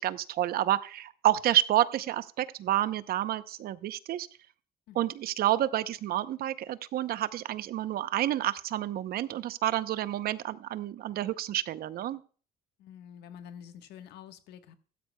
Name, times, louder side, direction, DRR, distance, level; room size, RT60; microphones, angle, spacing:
voice 1, 0.0-4.3 5.0-12.2, right 13 dB, 65° right, 0.7 m, -29 dB
voice 2, 12.8-14.8, left 9 dB, 80° left, 1.3 m, -48 dB
15.5 x 12.5 x 2.2 m
cardioid pair, 110°, 17 cm